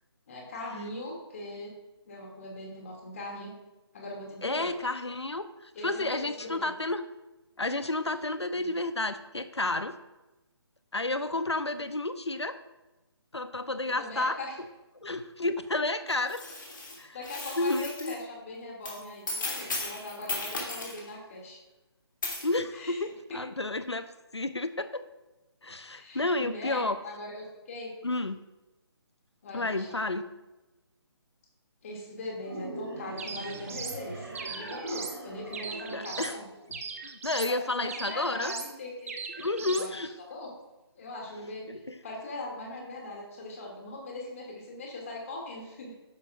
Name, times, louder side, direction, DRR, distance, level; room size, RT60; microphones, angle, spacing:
voice 1, 0.3-1.7 2.1-3.5 3.9-4.7 5.7-6.7 8.5-8.7 13.8-14.6 16.9-21.6 22.7-23.4 25.9-27.9 29.4-30.0 31.8-36.4 37.5-40.0 40.3-40.5 40.9-46.0, left 2 dB, 30° left, -1 dB, 2.5 m, -40 dB
voice 2, 4.4-7.0 7.6-9.9 10.9-12.6 13.3-14.4 15.0-16.4 17.0-17.2 17.6-18.2 22.4-24.1 24.3-25.1 25.6-27.0 28.0-28.4 29.5-30.2 35.9-36.4 37.0-38.5 39.4-40.1 41.7-41.9, left 2 dB, 80° left, 12 dB, 0.7 m, -31 dB
sound 1, 16.1-18.2 18.8-21.1 22.2-22.5, left 2 dB, 50° left, 3.1 m, -36 dB
sound 2, 32.4-36.9, right 2 dB, 60° right, 2.5 m, -42 dB
sound 3, 33.2-34.0 34.3-35.2 35.5-36.4 36.7-37.5 37.9-38.7 39.1-39.9, right 5 dB, 30° right, 0.8 m, -39 dB
12.0 x 9.9 x 2.5 m, 1.1 s
figure-of-eight pair, 145°, 14 cm